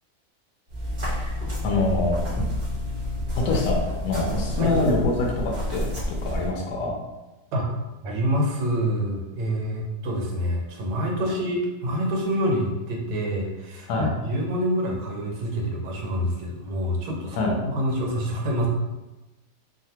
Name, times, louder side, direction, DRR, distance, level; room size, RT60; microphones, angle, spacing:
sound 1, 0.7-6.5, left 1 dB, 60° right, 0.4 m, -29 dB
voice 1, 1.6-2.2 3.4-6.9 13.9-14.1 17.3-17.5, left 2 dB, 65° left, -1 dB, 1.0 m, -25 dB
voice 2, 8.0-18.7, equal, 85° right, -1 dB, 1.4 m, -27 dB
3.3 x 2.2 x 2.8 m, 1.1 s
omnidirectional pair, 2.1 m